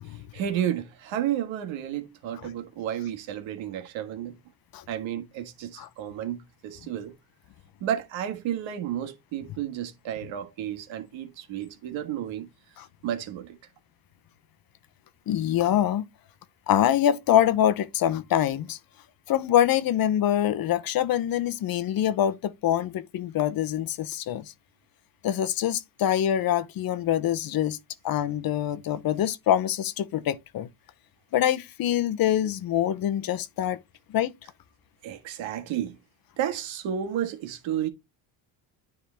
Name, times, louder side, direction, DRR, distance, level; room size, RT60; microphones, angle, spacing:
voice 1, 0.3-4.4 4.9-7.1 7.8-12.5 13.0-13.6 35.0-36.0 36.4-37.9, right 10 dB, 75° right, 1.6 m, -32 dB
voice 2, 15.3-16.0 16.7-18.8 19.3-24.5 25.2-27.8 28.0-30.7 31.3-33.8 34.1-34.3, left 11 dB, 50° left, 0.7 m, -25 dB
10.0 x 3.8 x 3.4 m
cardioid pair, 135°, 46 cm